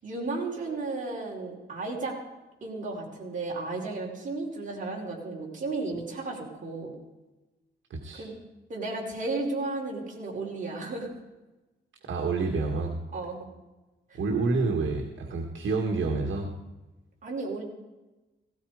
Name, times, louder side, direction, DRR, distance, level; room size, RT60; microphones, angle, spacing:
voice 1, 0.0-2.2 2.6-6.9 8.2-8.4 8.7-11.1 13.1-13.5 14.1-14.2 17.2-17.6, right 3 dB, 40° right, -2 dB, 5.0 m, -34 dB
voice 2, 7.9-8.3 12.1-13.0 14.1-16.5, right 3 dB, 75° right, 1 dB, 1.9 m, -28 dB
17.0 x 17.0 x 5.1 m, 1.1 s
wide cardioid pair, 145°, 20 cm